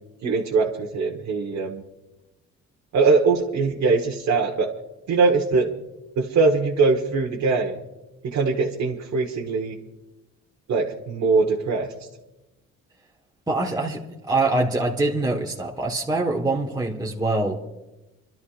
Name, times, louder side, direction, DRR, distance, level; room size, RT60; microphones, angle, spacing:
voice 1, 0.2-1.8 2.9-4.7 5.1-5.7 6.1-7.8 8.2-9.8 10.7-11.9, right 4 dB, 65° right, 0 dB, 1.4 m, -22 dB
voice 2, 13.5-17.6, right 2 dB, 15° right, -2 dB, 1.3 m, -24 dB
30.0 x 12.5 x 2.5 m, 1.0 s
cardioid pair, 90°, 30 cm